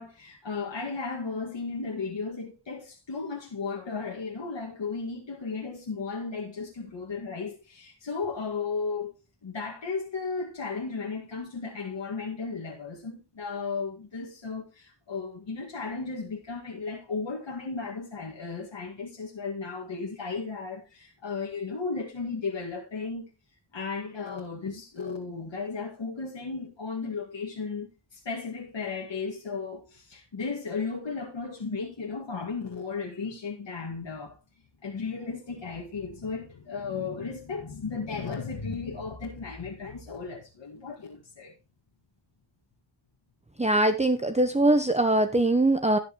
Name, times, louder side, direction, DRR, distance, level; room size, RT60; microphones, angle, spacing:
voice 1, 0.0-9.1 9.4-23.3 23.7-34.4 34.8-41.5, left 4 dB, 75° left, 2.1 m, -35 dB
voice 2, 43.6-46.0, right 2 dB, 15° right, 1.0 m, -22 dB
17.0 x 6.6 x 3.1 m
wide cardioid pair, 70°, 45 cm